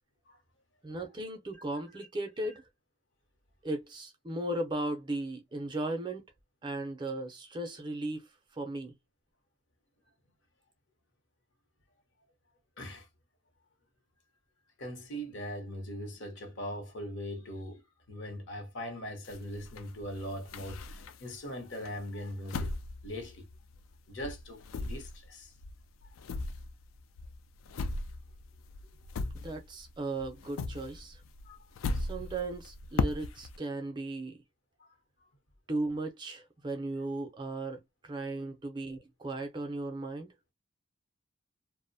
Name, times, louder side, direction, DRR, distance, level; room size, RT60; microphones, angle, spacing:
voice 1, 0.8-2.6 3.6-6.2 6.6-8.3 8.5-8.9 29.3-31.2 31.9-34.4 35.7-40.3, right 2 dB, 20° right, 0.4 m, -36 dB
voice 2, 12.8-13.1 14.8-17.8 18.1-22.7 23.0-23.5 24.1-25.5 31.4-31.6 34.8-35.0 38.4-38.5, equal, 65° left, 0.8 m, -41 dB
sound 1, 19.3-21.4 21.9-24.0 24.2-29.9 30.2-33.6, left 3 dB, 80° left, 0.3 m, -37 dB
2.5 x 2.0 x 2.5 m
head